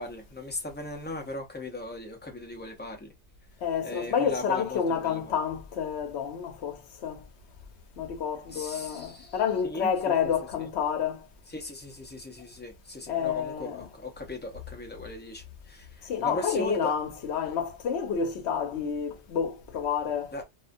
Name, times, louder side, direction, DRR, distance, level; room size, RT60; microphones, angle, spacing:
voice 1, 0.0-3.1 3.8-5.3 8.5-10.1 10.6-10.7 11.5-16.9 20.3-20.4, left 1 dB, 20° left, 0.3 m, -38 dB
voice 2, 3.6-7.2 8.0-11.2 13.1-13.9 16.1-20.3, left 7 dB, 75° left, 0.9 m, -29 dB
2.3 x 2.2 x 2.5 m
omnidirectional pair, 1.1 m